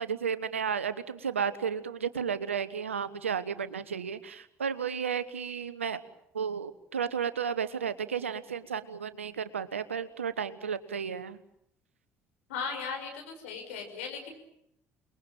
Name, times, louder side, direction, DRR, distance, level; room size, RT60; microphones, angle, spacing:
voice 1, 0.0-6.0 6.3-11.4, right 7 dB, 90° right, 15 dB, 1.2 m, -33 dB
voice 2, 12.5-14.3, left 5 dB, 80° left, 3 dB, 5.9 m, -37 dB
29.5 x 21.0 x 9.2 m, 0.76 s
hypercardioid pair, 55°, 7 cm